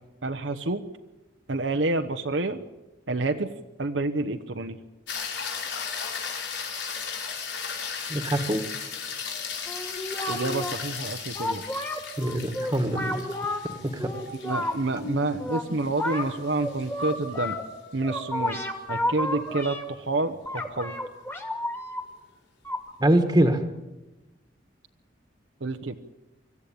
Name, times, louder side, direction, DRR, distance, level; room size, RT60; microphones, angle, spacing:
voice 1, 0.2-0.8 1.5-2.6 3.1-3.5 3.8-4.8 10.3-11.7 14.4-17.6 17.9-18.6 18.9-20.9 25.6-26.0, right 2 dB, 85° right, 6 dB, 1.0 m, -28 dB
sound 1, 5.1-17.5 21.9-22.0, left 6 dB, 90° left, 5.5 m, -36 dB
voice 2, 8.1-8.6 12.2-13.2 13.9-14.1 23.0-23.6, right 1 dB, 20° right, 6 dB, 1.5 m, -23 dB
sound 2, 9.7-10.7 11.4-13.6 14.0-17.7 18.0-19.8 20.5-22.0 22.7-22.8, left 1 dB, 15° left, 2.2 m, -31 dB
25.5 x 14.5 x 8.6 m, 1.1 s
head